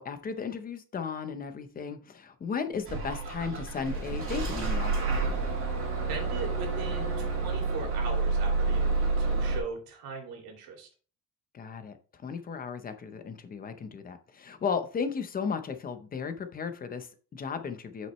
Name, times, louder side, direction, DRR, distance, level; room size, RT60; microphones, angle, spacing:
voice 1, 0.0-5.0 11.5-18.1, left 6 dB, 25° left, 9 dB, 0.7 m, -35 dB
Bus / Engine starting, 2.8-9.6, right 3 dB, 35° right, 2.6 m, -29 dB
voice 2, 6.1-10.9, right 5 dB, 90° right, 2 dB, 2.5 m, -39 dB
8.4 x 6.1 x 3.1 m, 0.38 s
cardioid pair, 180°, 35 cm